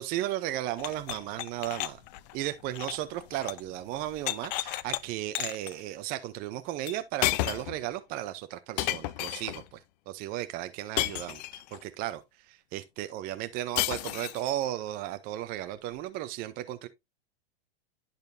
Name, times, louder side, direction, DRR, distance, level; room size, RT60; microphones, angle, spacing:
voice 1, 0.0-2.0 2.3-16.9, right 14 dB, 30° right, 0.5 m, -35 dB
sound 1, 0.8-3.7 4.0-5.0 5.4-5.7 6.9-7.0 7.2-7.8 8.8-9.6 11.0-11.8 13.8-14.5, left 17 dB, 45° left, 0.5 m, -32 dB
10.5 x 5.1 x 2.6 m
hypercardioid pair, 125°, 31 cm